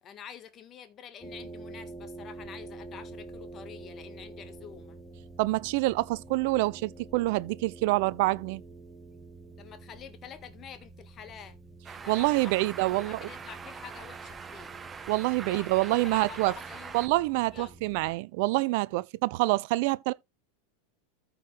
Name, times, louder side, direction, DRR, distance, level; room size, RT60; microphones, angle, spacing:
voice 1, 0.0-5.0 9.6-11.6 12.0-12.5 12.8-14.7 15.4-17.2 17.5-17.8, left 8 dB, 35° left, 1.6 m, -47 dB
sound 1, 1.2-18.1, right 2 dB, 5° left, 2.0 m, -48 dB
voice 2, 5.4-8.6 12.1-13.2 15.1-16.5 16.9-20.1, right 21 dB, 60° right, 0.4 m, -26 dB
sound 2, 11.8-17.1, right 5 dB, 20° right, 0.9 m, -43 dB
14.0 x 4.6 x 3.3 m
hypercardioid pair, 95°, 0 cm